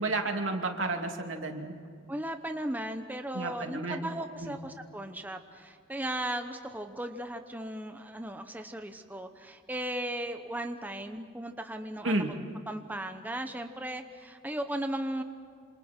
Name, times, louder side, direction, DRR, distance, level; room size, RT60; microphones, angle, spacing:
voice 1, 0.0-1.7 3.3-4.1 4.4-4.6 12.0-12.3, right 2 dB, 85° right, 3 dB, 2.8 m, -31 dB
voice 2, 2.1-12.4 12.7-15.2, right 1 dB, 10° right, 6 dB, 1.0 m, -36 dB
27.5 x 27.5 x 4.5 m, 2.3 s
head